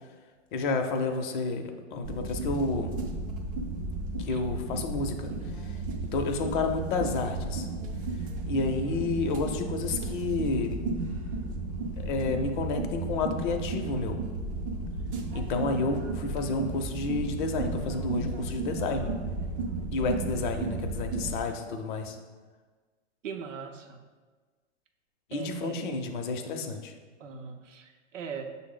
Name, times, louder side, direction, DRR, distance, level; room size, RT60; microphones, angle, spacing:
voice 1, 0.5-3.0 4.2-5.3 6.1-7.7 8.5-10.8 12.0-14.2 15.3-19.1 19.7-22.2 25.3-26.9, left 3 dB, 40° left, 5 dB, 0.5 m, -30 dB
sound 1, 2.0-21.4, right 3 dB, 30° right, 0.4 m, -34 dB
voice 2, 23.2-24.0 25.3-26.0 27.2-28.4, right 6 dB, 85° right, 4 dB, 0.6 m, -40 dB
6.0 x 2.0 x 3.7 m, 1.4 s
hypercardioid pair, 125°, 37 cm